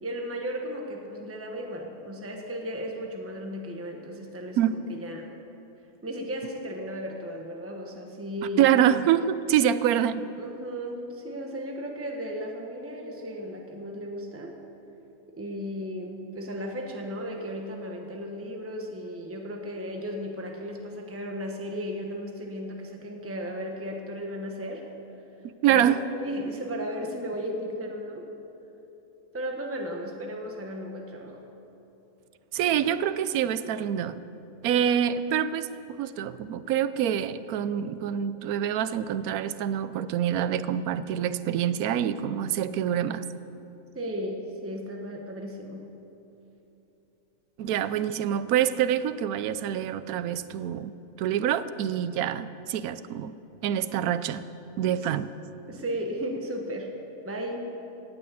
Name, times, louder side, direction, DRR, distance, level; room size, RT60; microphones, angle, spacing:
voice 1, 0.0-5.3 6.0-8.7 10.4-14.5 15.3-24.8 25.7-28.3 29.3-31.4 43.9-45.9 55.0-55.1 55.7-56.9 57.2-57.7, equal, 10° right, 1 dB, 1.1 m, -35 dB
voice 2, 8.6-10.3 25.6-26.0 32.5-34.2 34.6-35.7 36.0-43.3 47.6-50.9 51.2-53.3 53.6-54.4 54.8-55.3, right 10 dB, 80° right, 14 dB, 1.1 m, -26 dB
18.0 x 6.3 x 8.5 m, 2.9 s
omnidirectional pair, 1.5 m